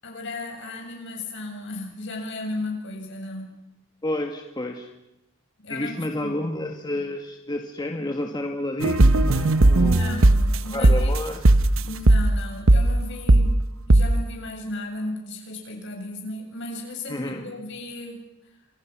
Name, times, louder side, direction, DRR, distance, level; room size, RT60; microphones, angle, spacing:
voice 1, 0.0-3.6 5.6-6.5 9.8-11.1 11.7-13.6 13.9-18.2, left 2 dB, 65° left, 2 dB, 7.5 m, -35 dB
voice 2, 4.0-4.9 5.7-10.3 10.7-11.5 17.1-17.5, left 1 dB, 20° left, 3 dB, 2.0 m, -30 dB
sound 1, 8.8-10.6 10.8-11.2 11.4-11.8 12.1-12.4 12.7-13.0 13.3-13.6 13.9-14.2, right 2 dB, 90° right, 1.1 m, -16 dB
30.0 x 27.0 x 6.2 m, 0.89 s
head